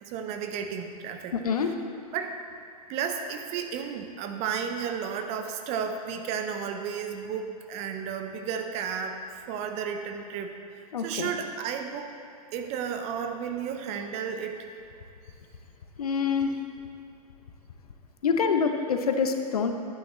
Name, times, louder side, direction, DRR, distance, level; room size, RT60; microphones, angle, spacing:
voice 1, 0.0-1.4 1.6-1.7 2.1-2.4 2.9-9.2 9.5-10.5 11.0-12.1 12.5-14.7, right 7 dB, 35° right, 6 dB, 0.8 m, -33 dB
voice 2, 1.3-1.7 10.9-11.3 16.0-16.5 18.2-19.7, left 6 dB, 70° left, 6 dB, 0.8 m, -26 dB
11.5 x 9.1 x 3.1 m, 2.4 s
figure-of-eight pair, 100°, 20 cm